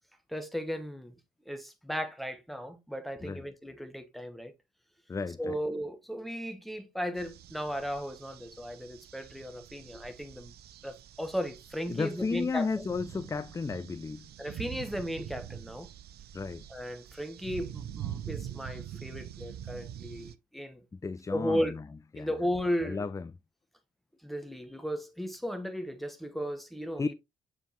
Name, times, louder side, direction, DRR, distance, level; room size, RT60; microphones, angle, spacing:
voice 1, 0.3-1.1 1.5-4.5 5.4-10.5 10.8-12.8 14.4-15.9 16.7-20.8 21.3-21.8 22.1-23.0 24.2-27.1, equal, ahead, 1.2 m, -35 dB
voice 2, 5.1-5.5 11.9-14.3 16.3-16.6 20.9-21.8 22.1-22.3 22.8-23.3 27.0-27.1, left 4 dB, 15° left, 0.4 m, -33 dB
sound 1, 7.2-20.3, right 10 dB, 55° right, 0.5 m, -44 dB
6.8 x 4.7 x 3.0 m
hypercardioid pair, 40°, 20 cm